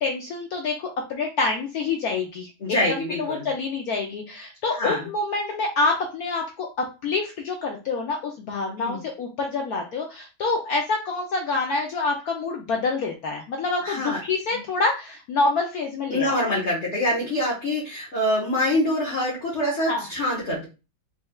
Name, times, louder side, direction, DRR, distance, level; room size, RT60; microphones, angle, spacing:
voice 1, 0.0-2.5 3.2-16.3 19.8-20.0, left 3 dB, 65° left, 1 dB, 1.0 m, -27 dB
voice 2, 2.6-3.5 4.7-5.1 8.8-9.0 13.8-14.2 14.5-14.6 16.1-20.7, left 1 dB, 40° left, -5 dB, 1.3 m, -25 dB
4.3 x 3.2 x 2.3 m, 0.29 s
omnidirectional pair, 2.0 m